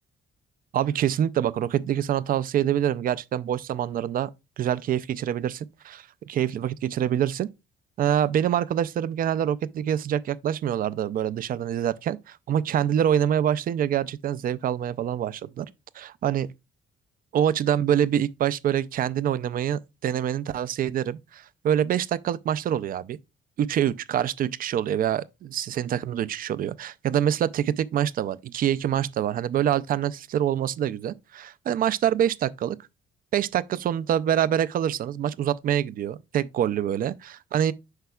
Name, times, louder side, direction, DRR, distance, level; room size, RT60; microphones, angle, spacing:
voice 1, 0.7-4.3 4.6-7.5 8.0-15.7 16.0-16.5 17.3-23.2 23.6-32.8 33.3-37.7, right 10 dB, 45° right, 0.4 m, -25 dB
7.9 x 5.7 x 2.3 m
cardioid pair, 145°, 20 cm